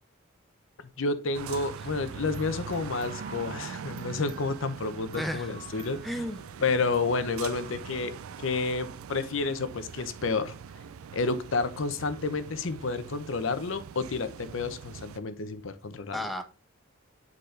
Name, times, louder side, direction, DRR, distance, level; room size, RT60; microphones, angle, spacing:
voice 1, 1.0-6.0 6.6-8.1 8.4-10.5 11.1-16.2, left 3 dB, 70° left, 11 dB, 0.7 m, -30 dB
sound 1, 1.3-15.2, right 7 dB, 90° right, 0.4 m, -42 dB
sound 2, 2.3-8.8, right 2 dB, 30° right, 1.5 m, -51 dB
voice 2, 5.2-5.6 6.0-6.4 16.1-16.4, equal, ahead, 6 dB, 0.5 m, -33 dB
7.8 x 4.1 x 3.3 m, 0.31 s
head